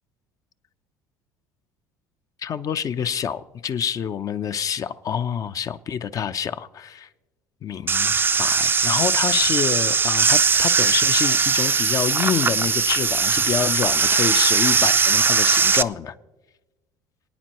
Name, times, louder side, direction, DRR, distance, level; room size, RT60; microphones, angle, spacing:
voice 1, 2.4-7.1 7.6-16.1, left 8 dB, 45° left, 0.7 m, -27 dB
sound 1, 7.9-15.8, right 5 dB, 25° right, 0.4 m, -20 dB
27.5 x 9.4 x 3.1 m
hypercardioid pair, 75°, 9 cm